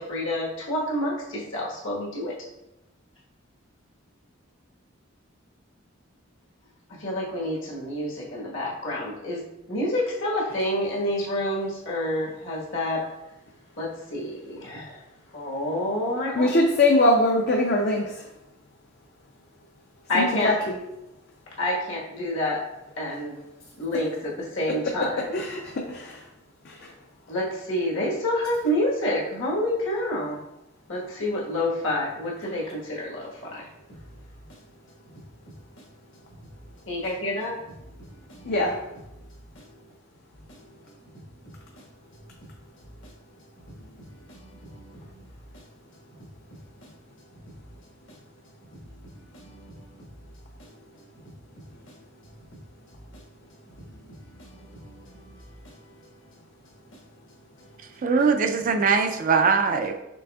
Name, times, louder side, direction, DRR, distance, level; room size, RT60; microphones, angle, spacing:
voice 1, 0.0-2.3 7.0-13.0 13.8-15.0 15.3-16.5 20.1-20.5 21.6-22.6 23.0-23.4 23.8-25.4 27.3-30.4 30.9-33.7 36.9-37.5 37.8-38.0 38.3-38.5 39.1-39.3 39.5-39.6 40.5-40.6 43.0-43.1 43.6-45.0 48.8-49.0 49.3-50.3 50.6-50.8 51.9-52.0 53.1-53.2 53.9-55.4 55.6-55.8 57.6-57.7, left 1 dB, 70° left, -4 dB, 1.4 m, -29 dB
voice 2, 16.4-18.2 20.1-20.8 24.8-25.1 25.3-26.2 26.7-26.9 38.5-38.8, left 1 dB, 50° left, 0 dB, 0.5 m, -22 dB
voice 3, 58.0-59.9, right 5 dB, 40° right, 6 dB, 0.3 m, -21 dB
6.0 x 3.4 x 2.3 m, 0.90 s
head